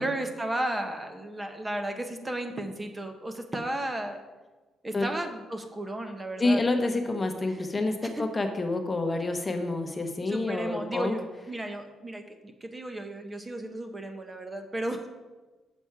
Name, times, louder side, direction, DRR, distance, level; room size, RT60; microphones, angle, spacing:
voice 1, 0.0-4.2 4.8-6.6 7.5-7.6 8.0-8.3 10.3-15.1, right 1 dB, 20° right, 5 dB, 1.0 m, -34 dB
voice 2, 6.4-11.1, left 2 dB, 25° left, 5 dB, 0.9 m, -28 dB
7.1 x 7.0 x 4.8 m, 1.2 s
cardioid pair, 90°, 0 cm